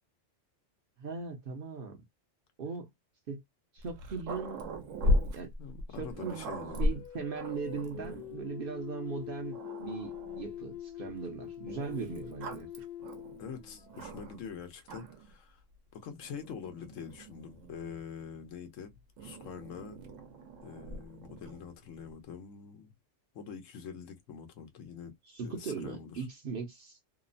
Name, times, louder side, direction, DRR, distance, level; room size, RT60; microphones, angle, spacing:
voice 1, 1.0-2.0 2.6-2.9 3.3-3.4 3.7-4.7 5.0-5.5 6.0-6.5 6.8-12.7 25.3-27.0, right 5 dB, 55° right, 0.7 m, -39 dB
Growling, 3.8-8.4 9.1-9.2 9.5-10.6 11.7-14.5 14.8-15.3 16.2-18.0 19.2-21.7, left 1 dB, 80° right, 1.0 m, -37 dB
voice 2, 5.6-7.0 13.4-15.6 15.9-20.0 20.6-22.9 23.3-25.1 25.4-26.2, left 7 dB, 85° left, 1.1 m, -45 dB
sound 1, 6.9-14.3, left 11 dB, 60° left, 0.7 m, -44 dB
2.9 x 2.0 x 2.5 m
omnidirectional pair, 1.3 m